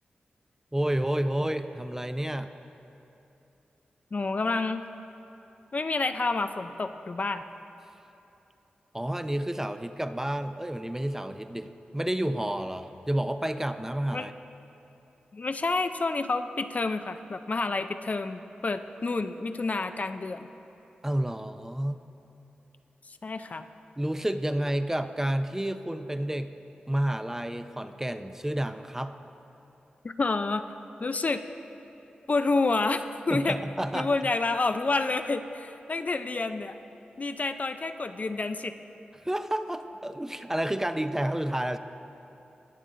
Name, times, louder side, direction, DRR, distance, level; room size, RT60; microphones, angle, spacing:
voice 1, 0.7-2.5 8.9-14.3 21.0-22.0 24.0-26.5 26.9-29.1 33.3-34.3 39.2-41.8, right 1 dB, 15° right, 9 dB, 0.5 m, -30 dB
voice 2, 4.1-4.8 5.7-7.4 14.1-14.3 15.3-20.5 23.2-23.6 30.0-30.6 31.0-31.4 32.3-33.6 33.9-36.8 37.2-38.7, left 3 dB, 45° left, 9 dB, 0.4 m, -29 dB
18.5 x 6.6 x 3.7 m, 2.9 s
cardioid pair, 40°, 3 cm